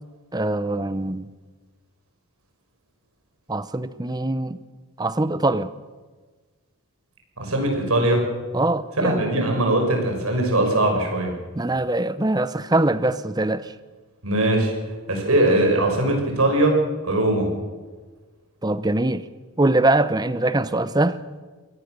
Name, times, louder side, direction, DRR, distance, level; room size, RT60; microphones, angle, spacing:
voice 1, 0.3-1.3 3.5-4.6 5.0-5.7 8.5-9.2 11.6-13.7 18.6-19.2 19.6-21.2, right 2 dB, 20° right, 14 dB, 0.7 m, -22 dB
voice 2, 7.4-8.2 9.0-11.3 14.2-14.7 15.1-16.8 17.0-17.5, right 1 dB, 85° right, 2 dB, 5.9 m, -20 dB
23.0 x 17.5 x 6.7 m, 1.4 s
head